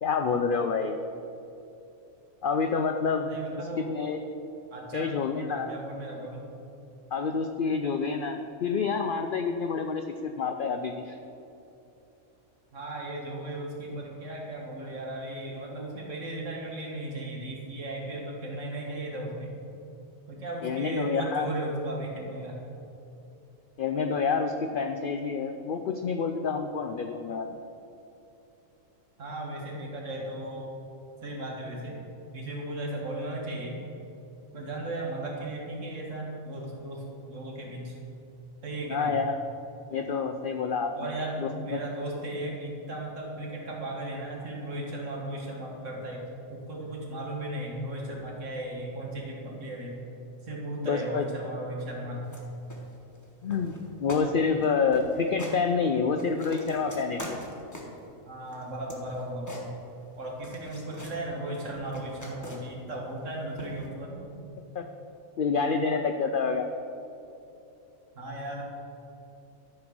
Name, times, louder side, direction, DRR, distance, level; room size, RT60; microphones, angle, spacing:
voice 1, 0.0-1.0 2.4-3.3 3.8-4.2 4.9-5.7 7.1-11.2 20.6-21.5 23.8-27.6 38.9-39.4 39.9-41.1 41.4-41.8 50.8-51.2 53.4-57.4 64.8-64.9 65.4-66.7, left 5 dB, 80° left, 6 dB, 0.4 m, -28 dB
voice 2, 3.2-3.9 4.7-5.1 5.4-6.4 12.7-19.6 20.3-22.6 29.2-30.7 31.2-32.0 32.3-33.8 34.5-38.0 38.6-39.2 41.0-50.0 50.4-52.3 58.3-59.6 60.2-64.5 68.2-68.6, right 1 dB, 60° right, -2 dB, 1.9 m, -36 dB
sound 1, 52.2-52.4 52.7-53.2 53.5-53.8 54.1-54.3 54.6-54.7 54.9-55.6 56.0-58.0 58.5-60.1 60.4-61.2 61.6-62.8 63.6-63.9, left 1 dB, 15° left, 1.1 m, -43 dB
12.5 x 4.4 x 6.1 m, 2.8 s
omnidirectional pair, 1.4 m